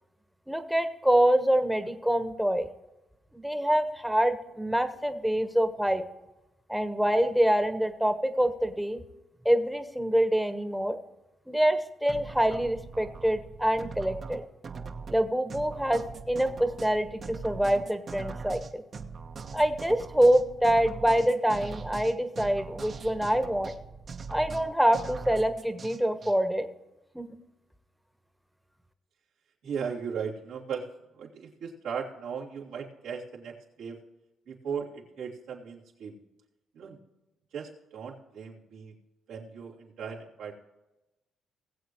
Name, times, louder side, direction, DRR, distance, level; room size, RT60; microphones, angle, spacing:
voice 1, 0.5-2.7 3.3-6.0 6.7-9.0 9.4-11.0 11.5-14.4 15.1-16.0 16.3-18.8 19.5-23.7 24.3-26.7 27.1-27.3, equal, ahead, 8 dB, 1.2 m, -25 dB
sound 1, 12.1-26.3, right 5 dB, 50° right, 1.1 m, -41 dB
voice 2, 29.6-30.9 31.1-34.0 34.5-36.2 36.7-37.0 37.5-38.9 39.3-40.6, right 6 dB, 90° right, -4 dB, 2.9 m, -37 dB
20.0 x 7.9 x 3.1 m, 0.99 s
cardioid pair, 90°, 0 cm